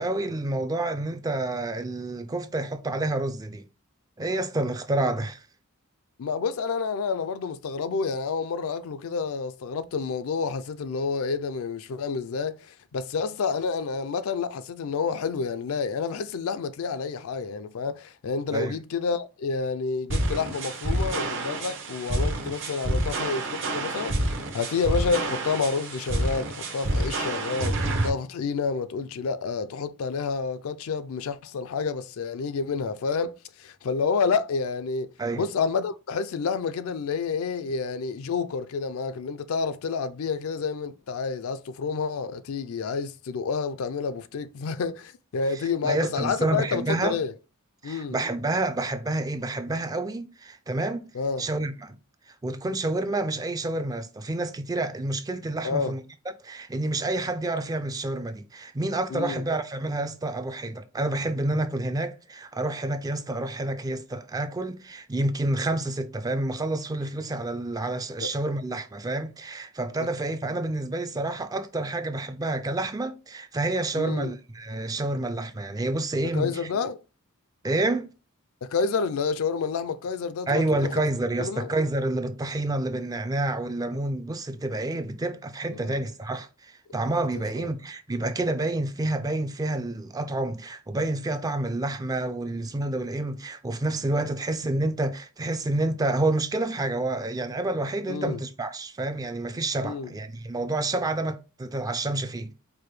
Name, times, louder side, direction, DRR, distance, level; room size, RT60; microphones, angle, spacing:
voice 1, 0.0-3.6 4.2-5.4 18.5-18.8 35.2-35.5 45.5-47.2 47.8-51.1 51.4-51.9 52.3-56.0 56.4-76.7 77.6-78.1 80.5-102.5, right 2 dB, 15° right, 0.4 m, -29 dB
voice 2, 6.2-47.3 47.8-48.2 51.1-51.5 55.6-55.9 59.1-59.4 68.2-68.3 73.9-74.3 76.3-77.0 78.6-80.9 81.4-81.7 85.7-86.0 87.6-87.7 98.1-98.4 99.8-100.1, left 5 dB, 65° left, 0.4 m, -29 dB
sound 1, 20.1-28.1, right 1 dB, 60° right, 0.8 m, -28 dB
4.7 x 2.2 x 3.1 m
head